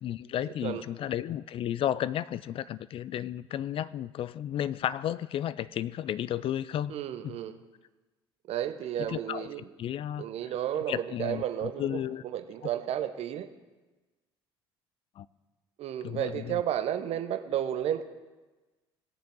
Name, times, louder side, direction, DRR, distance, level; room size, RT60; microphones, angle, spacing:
voice 1, 0.0-6.9 9.1-9.5 9.8-10.3 10.9-11.4 11.8-12.2 15.2-15.3 16.0-16.6, left 11 dB, 45° left, 18 dB, 0.4 m, -33 dB
voice 2, 6.9-7.6 8.5-9.7 10.2-13.5 15.8-18.0, right 10 dB, 55° right, 10 dB, 0.8 m, -32 dB
18.5 x 6.9 x 3.8 m, 1.2 s
hypercardioid pair, 55°, 13 cm